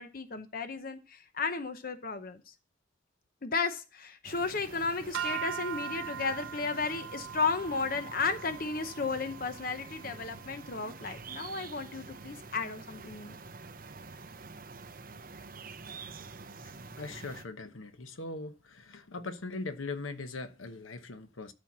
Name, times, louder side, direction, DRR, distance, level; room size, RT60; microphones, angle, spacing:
voice 1, 0.0-2.5 3.4-13.4, left 4 dB, 45° left, 0.8 m, -34 dB
sound 1, 4.2-17.5, right 4 dB, 45° right, 0.8 m, -47 dB
sound 2, 5.1-11.5, right 8 dB, 75° right, 0.4 m, -41 dB
voice 2, 16.6-21.5, left 3 dB, 80° left, 1.0 m, -40 dB
12.5 x 4.4 x 6.0 m
head